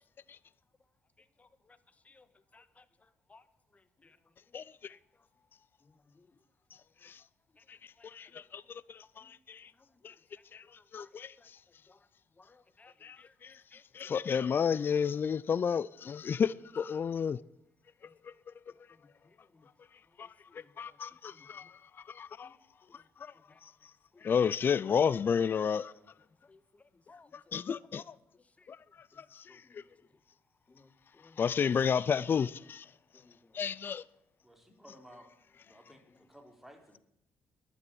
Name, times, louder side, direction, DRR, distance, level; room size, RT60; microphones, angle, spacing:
voice 1, 1.4-1.8 2.0-2.3 2.5-3.4 3.7-4.2 4.9-5.0 5.8-6.4 7.5-7.6 8.0-8.4 9.2-9.3 9.8-10.2 10.8-11.1 11.4-11.5 11.9-12.1 12.4-13.3 13.7-14.2 18.0-18.1 18.7-19.7 20.2-21.0 21.3-21.7 22.4-22.6 22.9-23.0 23.3-23.6 24.1-24.3 26.4-27.7 28.3-28.7 29.1-29.2 29.5-29.8 30.7-31.6 31.9-32.0 33.1-33.6, left 3 dB, 25° left, 1.5 m, -63 dB
voice 2, 4.5-4.9 7.0-7.2 7.7-7.8 8.0-9.7 10.0-10.1 10.5-10.6 10.9-11.3 13.0-13.2 13.4-13.5 13.9-17.4 20.2-20.3 20.8-21.7 22.1-22.5 23.2-23.3 24.2-25.9 27.5-28.1 28.7-28.8 29.2-29.8 31.4-32.8 33.5-34.0, left 7 dB, 45° left, 0.5 m, -31 dB
voice 3, 25.7-26.1 34.4-35.3 35.6-37.0, equal, 5° right, 3.9 m, -56 dB
11.5 x 9.8 x 9.0 m
supercardioid pair, 70°, 5 cm